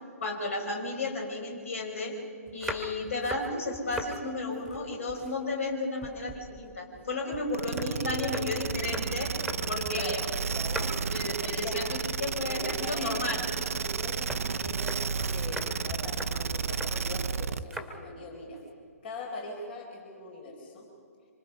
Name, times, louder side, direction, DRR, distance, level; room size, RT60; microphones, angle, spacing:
voice 1, 0.2-2.1 2.5-9.3 9.7-10.2 11.1-13.4, left 2 dB, 55° left, 3 dB, 4.8 m, -33 dB
sound 1, 2.5-4.2 4.5-5.7 6.0-10.2 10.5-11.2 11.5-11.9 12.1-12.3 12.7-17.0 17.6-18.0 18.3-18.7, right 1 dB, 5° left, 2.3 m, -41 dB
sound 2, 7.5-17.7, right 6 dB, 60° right, 0.7 m, -32 dB
voice 2, 8.0-8.4 9.8-10.9 11.2-11.9 12.4-13.3 13.7-18.6 19.0-20.9, left 2 dB, 40° left, 1 dB, 4.2 m, -41 dB
26.0 x 25.5 x 5.5 m, 2.3 s
figure-of-eight pair, 130°, 8 cm